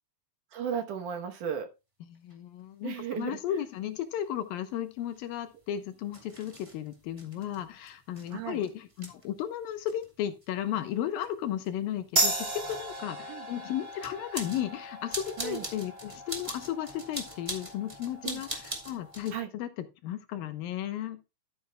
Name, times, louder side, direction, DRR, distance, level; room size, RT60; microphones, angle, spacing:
voice 1, 0.5-1.7 2.8-3.6 8.3-8.6 13.3-13.5 15.4-15.7 18.2-18.4 19.3-19.5, right 8 dB, 65° right, 5 dB, 2.3 m, -35 dB
voice 2, 2.1-19.7 20.0-21.2, left 11 dB, 75° left, 9 dB, 2.7 m, -34 dB
sound 1, 2.3-2.4 3.1-3.2 4.2-19.4, right 1 dB, 15° right, 1.2 m, -44 dB
sound 2, 12.2-19.2, right 2 dB, 35° right, 0.9 m, -35 dB
12.5 x 8.9 x 2.3 m, 0.27 s
omnidirectional pair, 4.3 m